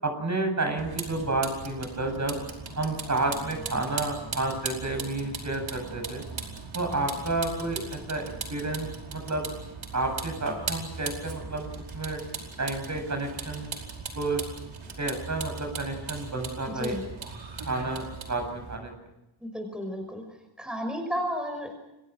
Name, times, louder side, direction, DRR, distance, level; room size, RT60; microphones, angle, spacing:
voice 1, 0.0-2.4 2.8-6.2 6.7-8.2 8.5-9.4 9.9-11.7 11.9-12.2 12.6-13.7 14.1-14.4 15.0-17.0 17.6-18.0 18.3-18.9, right 2 dB, 40° right, 5 dB, 8.0 m, -30 dB
Vehicle, 0.8-18.8, right 5 dB, 85° right, 5.0 m, -39 dB
voice 2, 19.4-20.2 20.6-21.7, equal, ahead, 5 dB, 5.4 m, -32 dB
29.5 x 23.0 x 6.4 m, 0.94 s
wide cardioid pair, 110°, 45 cm